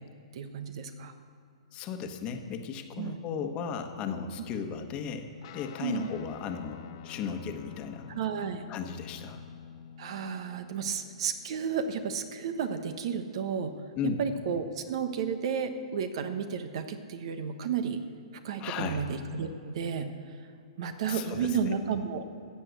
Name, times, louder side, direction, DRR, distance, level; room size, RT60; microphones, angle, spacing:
voice 1, 0.3-1.1 3.0-3.2 5.8-6.1 8.1-8.6 10.0-13.7 14.2-18.0 18.4-20.1 20.8-22.2, right 6 dB, 55° right, 8 dB, 1.2 m, -32 dB
voice 2, 1.7-5.3 5.5-8.1 8.7-9.4 14.0-14.2 18.6-19.0 21.1-21.8, left 6 dB, 30° left, 6 dB, 1.4 m, -35 dB
Guitar, 5.4-14.2, left 9 dB, 50° left, 1.1 m, -50 dB
14.0 x 8.1 x 8.2 m, 2.5 s
hypercardioid pair, 130°, 3 cm